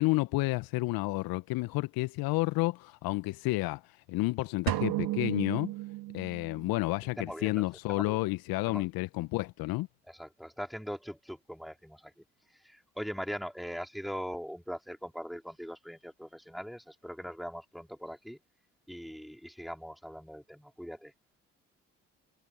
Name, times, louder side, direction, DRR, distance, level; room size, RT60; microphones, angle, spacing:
voice 1, 0.0-3.8 4.1-5.7 6.1-9.9, left 21 dB, 65° left, 1.4 m, -30 dB
sound 1, 4.7-6.7, right 18 dB, 65° right, 2.0 m, -33 dB
voice 2, 7.2-7.6 8.0-8.2 8.7-8.9 10.1-12.1 12.5-18.4 18.9-21.1, equal, ahead, 4.2 m, -41 dB
figure-of-eight pair, 45°, 38 cm